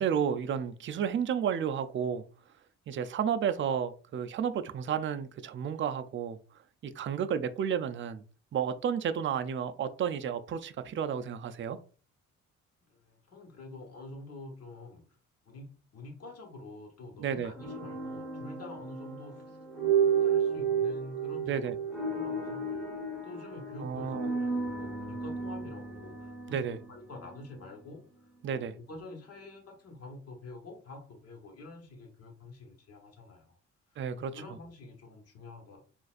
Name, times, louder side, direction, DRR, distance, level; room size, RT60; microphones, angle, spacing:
voice 1, 0.0-2.2 2.9-6.4 6.8-8.2 8.5-11.8 17.2-17.5 21.5-21.7 23.8-24.3 26.5-26.8 28.4-28.7 34.0-34.4, right 8 dB, 40° right, 0.4 m, -32 dB
voice 2, 12.9-15.0 15.4-19.6 20.1-21.8 22.1-22.9 23.2-28.0 28.5-33.6 34.1-35.8, left 2 dB, 55° left, 1.3 m, -47 dB
sound 1, 17.6-27.6, right 6 dB, 5° right, 1.3 m, -32 dB
3.9 x 2.5 x 2.5 m
cardioid pair, 90°, 30 cm